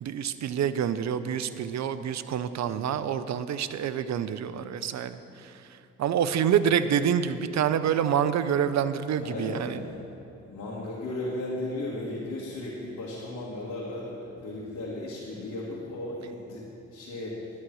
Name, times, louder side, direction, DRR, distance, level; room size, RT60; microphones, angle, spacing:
voice 1, 0.0-5.2 6.0-9.8, right 8 dB, 60° right, 13 dB, 0.7 m, -27 dB
voice 2, 9.2-10.0 10.5-16.6 16.9-17.4, left 1 dB, 60° left, -5 dB, 2.3 m, -35 dB
11.0 x 9.7 x 6.3 m, 2.8 s
supercardioid pair, 55°, 32 cm